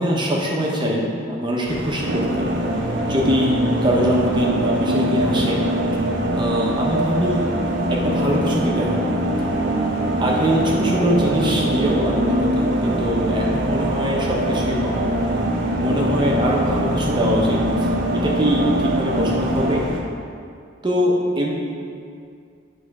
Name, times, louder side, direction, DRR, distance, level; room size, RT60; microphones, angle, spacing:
voice 1, 0.0-2.5 3.1-5.6 6.3-7.5 7.9-9.1 10.2-15.0 15.8-17.9 18.1-19.9 20.8-21.5, equal, 25° right, -3 dB, 0.9 m, -22 dB
sound 1, 1.7-20.0, right 1 dB, 85° right, 1.0 m, -34 dB
sound 2, 2.0-19.8, right 1 dB, 50° right, 0.5 m, -23 dB
sound 3, 10.7-19.9, equal, 45° left, 1.6 m, -34 dB
9.9 x 3.4 x 4.8 m, 2.3 s
head